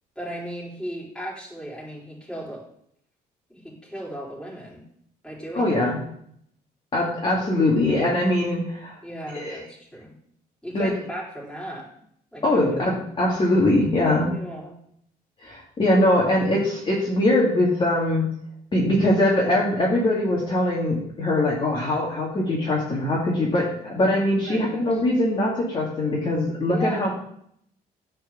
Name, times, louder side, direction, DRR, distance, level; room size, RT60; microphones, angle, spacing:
voice 1, 0.2-2.6 3.5-4.8 5.2-5.7 9.0-10.1 10.6-11.9 12.3-12.6 14.3-14.7 24.4-24.8 26.7-27.0, right 1 dB, 5° left, -5 dB, 4.4 m, -36 dB
voice 2, 5.5-6.0 6.9-9.0 9.3-9.6 10.7-10.9 12.4-14.3 15.4-18.3 18.7-27.1, left 1 dB, 30° left, -4 dB, 2.3 m, -22 dB
9.1 x 4.7 x 7.3 m, 0.69 s
cardioid pair, 110°, 17 cm